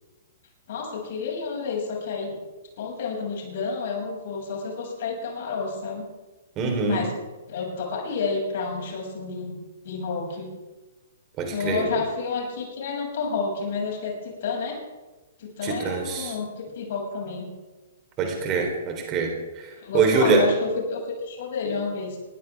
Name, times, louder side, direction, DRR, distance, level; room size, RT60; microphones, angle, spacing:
voice 1, 0.7-2.4 2.8-6.1 6.9-7.1 7.5-9.6 9.8-10.5 11.5-14.8 15.4-17.5 19.8-22.2, left 4 dB, 50° left, -1 dB, 6.6 m, -30 dB
voice 2, 6.6-7.0 11.4-11.9 15.6-16.3 18.2-20.5, right 4 dB, 25° right, 2 dB, 3.8 m, -24 dB
21.5 x 16.0 x 3.6 m, 1.2 s
figure-of-eight pair, 115°, 0 cm